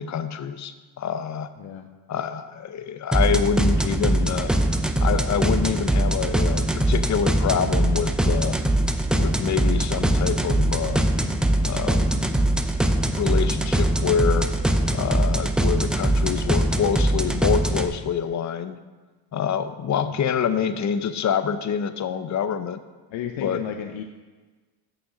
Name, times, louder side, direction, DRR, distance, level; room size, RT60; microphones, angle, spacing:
voice 1, 0.0-1.5 2.1-4.5 5.0-8.6 9.2-11.1 11.6-12.1 12.8-14.5 14.9-18.8 19.3-22.8 23.4-23.6, left 7 dB, 40° left, 11 dB, 0.6 m, -26 dB
sound 1, 3.1-17.9, right 1 dB, ahead, 0.5 m, -22 dB
voice 2, 23.1-24.0, left 9 dB, 75° left, 5 dB, 0.7 m, -33 dB
6.5 x 6.1 x 6.2 m, 1.3 s
cardioid pair, 80°, 47 cm